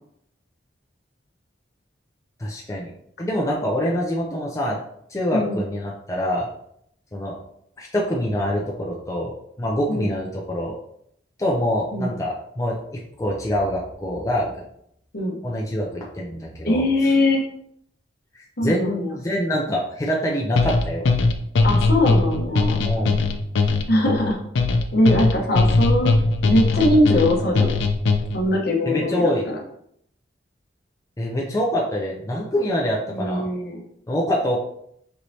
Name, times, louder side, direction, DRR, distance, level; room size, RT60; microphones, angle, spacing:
voice 1, 2.4-2.9 3.2-4.8 5.1-6.5 7.1-7.4 7.8-9.3 9.6-10.8 11.4-12.8 13.2-14.5 15.4-17.1 18.3-21.1 22.8-23.2 28.8-29.4 31.2-33.5 34.1-34.6, equal, 15° left, -3 dB, 0.5 m, -25 dB
voice 2, 16.6-17.4 18.6-19.1 21.6-22.9 23.9-24.4 24.9-26.1 26.4-27.7 28.3-29.6 33.1-33.8, left 1 dB, 55° left, 0 dB, 0.9 m, -21 dB
sound 1, 20.6-28.5, left 3 dB, 70° left, 0.4 m, -20 dB
4.5 x 3.1 x 2.7 m, 0.72 s
head